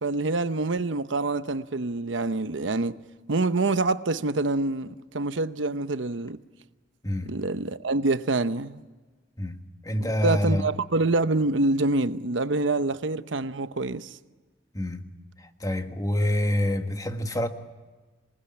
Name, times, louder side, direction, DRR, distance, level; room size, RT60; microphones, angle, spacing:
voice 1, 0.0-3.0 3.3-6.4 7.2-8.8 10.0-14.1, right 2 dB, 75° right, 0.9 m, -26 dB
voice 2, 9.8-10.7 14.7-15.0 15.6-17.5, left 1 dB, 20° left, 1.6 m, -26 dB
27.0 x 19.5 x 9.8 m
head